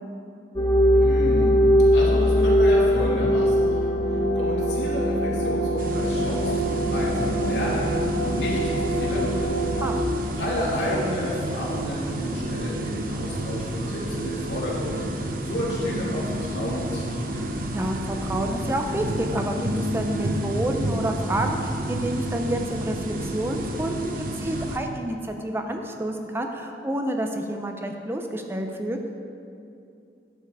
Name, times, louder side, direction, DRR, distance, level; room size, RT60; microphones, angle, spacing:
sound 1, 0.6-10.0, equal, 25° left, 1.1 m, -22 dB
voice 1, 1.0-1.6 1.9-4.0 4.3-9.7 10.3-15.0 15.4-17.3, left 1 dB, 85° left, -6 dB, 2.6 m, -31 dB
sound 2, 5.8-24.8, right 1 dB, 50° right, 0.8 m, -30 dB
voice 2, 17.7-29.0, right 1 dB, 15° right, 4 dB, 0.5 m, -29 dB
11.0 x 6.9 x 4.7 m, 2.6 s
head